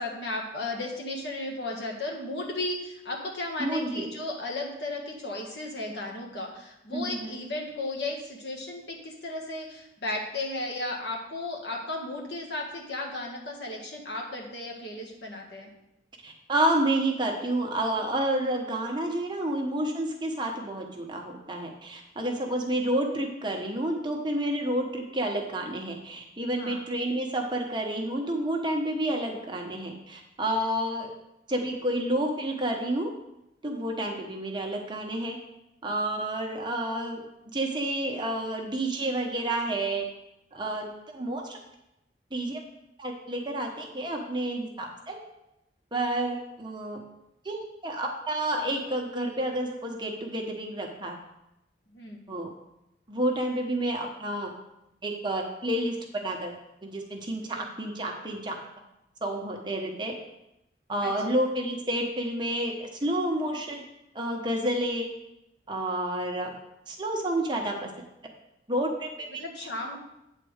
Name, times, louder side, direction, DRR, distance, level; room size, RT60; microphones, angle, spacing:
voice 1, 0.0-15.7 26.5-26.8 51.9-52.2 57.4-57.6 61.0-61.4 69.3-70.0, left 2 dB, 70° left, -1 dB, 1.7 m, -35 dB
voice 2, 3.6-4.1 6.9-7.3 16.2-31.1 31.5-33.1 33.6-35.4 35.8-37.2 37.5-40.0 40.5-41.6 42.3-42.6 43.0-45.2 45.9-47.0 47.4-51.2 52.3-52.5 53.1-54.5 55.0-56.0 56.2-56.5 56.8-58.5 59.2-60.1 60.9-63.8 64.1-65.1 65.7-66.5 66.9-67.9 68.7-69.4, right 1 dB, 25° right, 1 dB, 1.1 m, -30 dB
9.0 x 4.1 x 6.5 m, 0.87 s
head